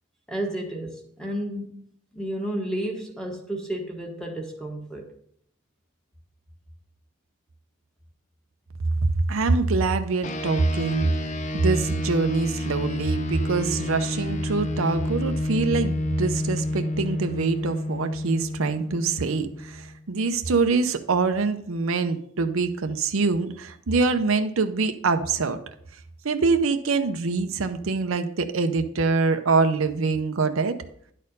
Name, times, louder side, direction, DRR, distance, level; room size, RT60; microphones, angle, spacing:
voice 1, 0.3-1.8 2.1-5.1, right 1 dB, 5° left, 1 dB, 1.3 m, -31 dB
voice 2, 9.3-11.1 11.5-25.6 26.2-30.8, right 4 dB, 75° right, 8 dB, 0.6 m, -24 dB
sound 1, 10.2-20.0, left 1 dB, 35° left, 0.6 m, -29 dB
11.0 x 4.3 x 5.3 m, 0.66 s
head